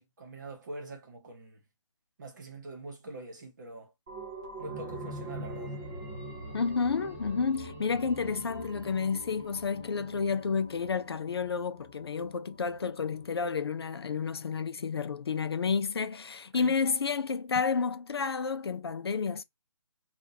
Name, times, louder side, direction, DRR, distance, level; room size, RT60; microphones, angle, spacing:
voice 1, 0.0-1.6 2.2-3.9 4.6-5.7 16.5-16.8, right 2 dB, 40° right, 1.2 m, -44 dB
sound 1, 4.1-13.4 13.8-13.9, right 1 dB, 10° right, 0.3 m, -43 dB
voice 2, 6.5-19.4, left 5 dB, 55° left, 0.5 m, -30 dB
3.6 x 2.4 x 2.8 m
hypercardioid pair, 165°, 16 cm